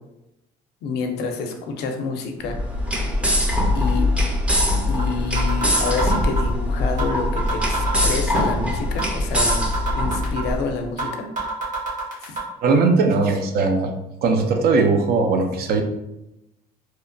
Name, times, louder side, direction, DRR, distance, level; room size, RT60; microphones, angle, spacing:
voice 1, 0.8-2.6 3.7-4.1 4.9-9.7 9.9-11.3 12.2-12.4, left 4 dB, 80° left, 4 dB, 0.5 m, -28 dB
sound 1, 2.4-10.6, left 1 dB, 5° right, 0.4 m, -22 dB
sound 2, 4.5-4.6 5.0-5.1 5.4-6.5 7.0-7.1 7.4-8.5 9.0-9.1 9.4-10.5 11.0-11.1 11.4-12.4, right 3 dB, 50° right, 1.2 m, -27 dB
voice 2, 12.6-13.9 14.2-15.8, right 4 dB, 70° right, 5 dB, 0.4 m, -19 dB
2.8 x 2.1 x 2.5 m, 0.89 s
cardioid pair, 110°, 17 cm